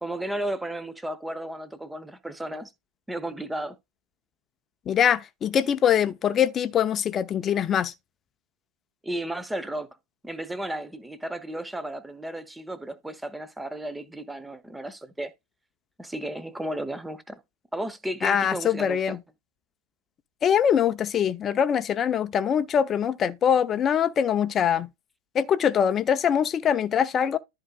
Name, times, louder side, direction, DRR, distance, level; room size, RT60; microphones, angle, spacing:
voice 1, 0.0-2.7 3.1-3.8 9.0-9.9 10.2-15.3 16.0-17.4 17.7-19.2, right 1 dB, 5° right, 1.2 m, -34 dB
voice 2, 4.9-7.9 18.2-19.2 20.4-24.9 25.3-27.4, left 8 dB, 25° left, 0.9 m, -23 dB
13.5 x 4.7 x 2.4 m
figure-of-eight pair, 90°, 0 cm